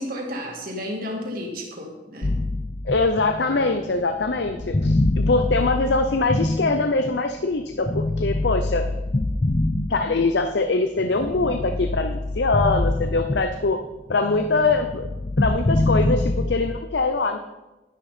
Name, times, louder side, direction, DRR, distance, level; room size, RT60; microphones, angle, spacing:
voice 1, 0.0-2.4, left 1 dB, 55° right, 0 dB, 2.6 m, -32 dB
sound 1, 2.2-7.3 7.9-10.5 11.0-13.8 14.1-16.8, left 2 dB, 30° left, 0.5 m, -25 dB
voice 2, 2.8-8.8 9.9-13.8 14.1-15.1 15.4-17.4, left 3 dB, 75° left, 7 dB, 0.7 m, -23 dB
11.0 x 10.5 x 4.3 m, 1.0 s
head